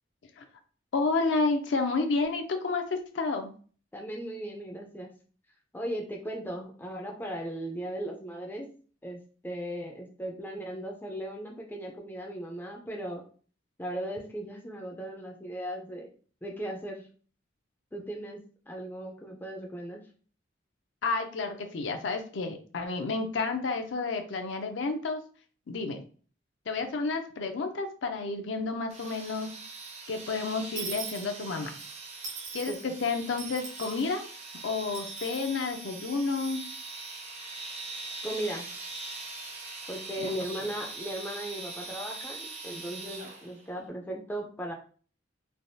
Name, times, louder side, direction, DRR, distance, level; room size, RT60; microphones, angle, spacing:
voice 1, 0.9-3.5 21.0-25.2 25.7-26.0 26.7-29.5 30.1-31.7 32.5-34.2 34.6-36.6 40.2-40.6, left 3 dB, 65° left, 5 dB, 0.5 m, -30 dB
voice 2, 3.9-5.1 5.7-8.7 9.0-13.2 13.8-16.1 16.4-17.1 17.9-18.4 18.7-20.0 32.7-32.9 38.2-38.7 39.9-44.7, right 1 dB, 10° left, 0 dB, 0.4 m, -37 dB
sound 1, 28.9-43.7, right 3 dB, 35° right, 0.6 m, -42 dB
Dishes pots and pans / Coin (dropping), 30.8-31.9 32.2-32.8 33.4-34.1 34.9-35.5, right 5 dB, 70° right, 1.0 m, -40 dB
3.3 x 2.3 x 2.6 m, 0.41 s
head